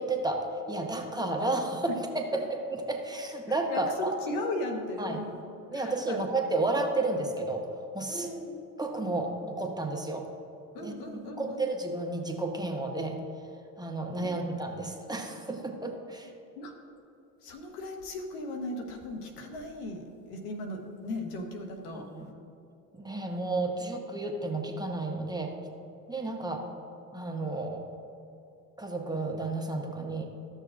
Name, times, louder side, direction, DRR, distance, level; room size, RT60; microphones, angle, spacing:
voice 1, 0.0-4.2 5.0-5.2 5.7-8.3 8.8-10.3 10.8-10.9 11.4-13.2 13.8-16.3 21.9-22.3 22.9-25.5 26.1-26.7 27.1-27.8 28.8-30.3, right 2 dB, 10° right, 2 dB, 1.0 m, -32 dB
voice 2, 3.7-5.4 5.7-6.3 8.1-8.6 10.7-11.7 14.2-14.3 16.6-16.7 17.4-22.0, left 1 dB, 85° left, 3 dB, 1.2 m, -37 dB
13.5 x 6.7 x 2.5 m, 2.8 s
hypercardioid pair, 70°, 45 cm